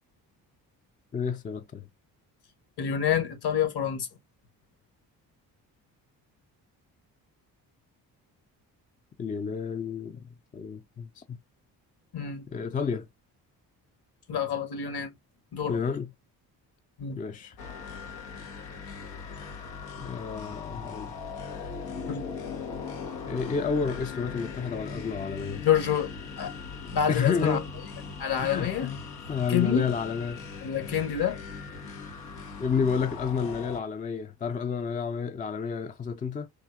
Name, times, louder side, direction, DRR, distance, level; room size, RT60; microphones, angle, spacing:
voice 1, 1.1-1.9 9.2-11.4 12.5-13.1 15.7-16.1 17.2-17.5 20.0-21.1 21.4-21.7 23.3-25.6 27.1-27.7 28.4-29.0 29.3-30.6 32.6-36.5, left 6 dB, 20° left, 0.4 m, -30 dB
voice 2, 2.8-4.1 12.1-12.4 14.3-15.1 15.5-15.8 17.0-17.2 22.0-22.3 25.6-26.1 26.4-26.5 26.9-27.6 28.2-28.9 29.5-29.9 30.6-31.4, left 8 dB, 50° left, 1.1 m, -27 dB
sound 1, 17.6-33.8, left 5 dB, 85° left, 0.8 m, -39 dB
3.7 x 2.7 x 2.3 m
hypercardioid pair, 45°, 49 cm